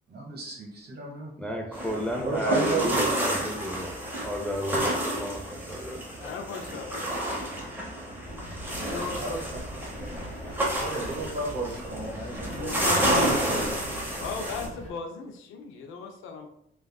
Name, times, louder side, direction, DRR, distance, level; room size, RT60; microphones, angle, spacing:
voice 1, 0.1-1.3 2.2-3.3 9.1-9.6 10.8-13.8, right 3 dB, 55° right, -1 dB, 1.1 m, -34 dB
voice 2, 1.4-6.1, equal, 5° left, 2 dB, 0.5 m, -32 dB
sound 1, 1.7-14.7, right 1 dB, 10° right, 0.9 m, -30 dB
voice 3, 6.2-7.1 8.4-8.5 8.9-9.3 12.4-13.4 14.2-16.5, left 5 dB, 85° left, 4 dB, 0.5 m, -37 dB
sound 2, 8.2-14.9, left 1 dB, 35° left, 0.8 m, -42 dB
3.3 x 2.4 x 2.3 m, 0.73 s
cardioid pair, 90°, 20 cm